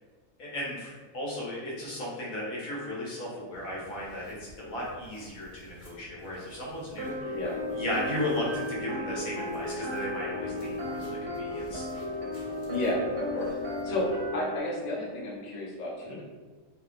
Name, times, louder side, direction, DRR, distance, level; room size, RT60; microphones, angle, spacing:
voice 1, 0.4-7.4 7.7-11.9 16.0-16.2, left 1 dB, 75° left, -5 dB, 1.2 m, -35 dB
sound 1, 3.5-14.3, left 1 dB, 35° left, 0.9 m, -50 dB
sound 2, 7.0-14.6, left 1 dB, 55° right, 0.7 m, -34 dB
voice 2, 12.7-13.6 13.8-16.2, left 1 dB, 55° left, -4 dB, 0.4 m, -32 dB
2.9 x 2.1 x 2.4 m, 1.4 s
omnidirectional pair, 1.5 m